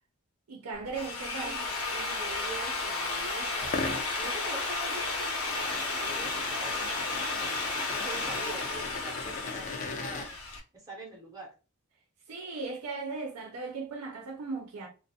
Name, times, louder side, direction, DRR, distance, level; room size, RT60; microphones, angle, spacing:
voice 1, 0.5-1.6 12.3-14.9, right 3 dB, 85° right, 0.5 m, -37 dB
Drill, 0.8-10.6, left 3 dB, 80° left, 0.7 m, -33 dB
voice 2, 1.0-3.7 4.2-10.4 10.7-11.5, right 2 dB, 15° right, 0.5 m, -45 dB
sound 1, 3.6-10.3, left 3 dB, 35° left, 0.4 m, -40 dB
2.3 x 2.0 x 2.7 m
head